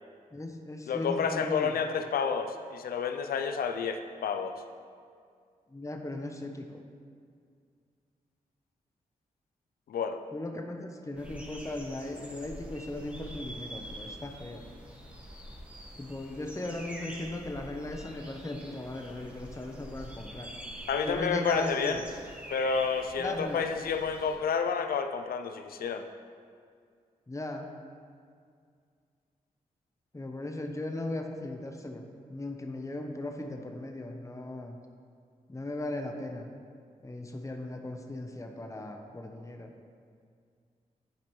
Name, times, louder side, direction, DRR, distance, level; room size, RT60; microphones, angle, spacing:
voice 1, 0.3-1.9 5.7-6.8 10.3-14.7 16.0-20.5 21.1-22.0 23.2-23.6 27.3-27.7 30.1-34.8 35.5-36.5 37.0-39.7, left 2 dB, 20° left, 4 dB, 0.8 m, -37 dB
voice 2, 0.9-4.6 9.9-10.2 20.9-22.0 22.5-26.0, left 6 dB, 75° left, 7 dB, 0.5 m, -30 dB
sound 1, 11.2-24.4, right 1 dB, 10° right, 1.3 m, -45 dB
10.5 x 5.1 x 3.1 m, 2.2 s
supercardioid pair, 40°, 15 cm